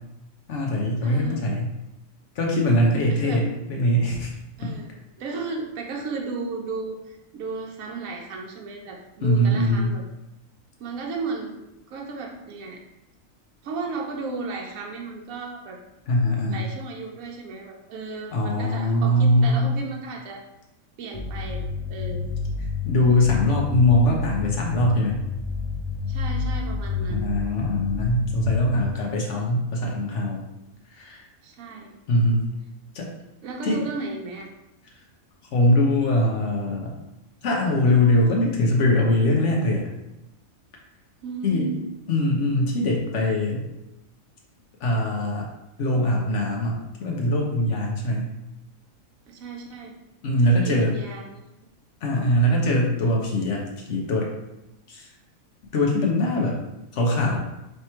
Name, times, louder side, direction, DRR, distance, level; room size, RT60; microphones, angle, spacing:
voice 1, 0.5-1.7 2.4-4.3 4.6-4.7 9.2-9.9 16.1-16.7 18.3-19.7 22.8-25.2 27.1-30.4 31.0-31.2 32.1-32.4 32.9-33.1 33.6-33.9 35.5-36.9 37.4-39.8 41.4-41.7 42.1-43.6 44.8-45.4 45.8-48.3 50.2-50.9 52.0-53.6 53.9-54.3 54.9-55.1 55.7-56.6 56.9-57.4, left 1 dB, 65° left, -1 dB, 1.0 m, -22 dB
voice 2, 1.0-1.5 3.1-3.4 4.6-4.9 5.2-10.0 10.8-11.6 11.9-12.8 13.6-15.8 16.5-20.4 21.0-22.3 26.1-27.3 29.1-29.3 31.4-31.9 33.4-34.5 41.2-41.8 49.3-50.0 50.5-51.5, right 3 dB, 80° right, 0 dB, 1.1 m, -34 dB
sound 1, 21.1-28.8, left 4 dB, 40° left, 0.4 m, -29 dB
3.3 x 3.0 x 4.3 m, 0.92 s
omnidirectional pair, 1.4 m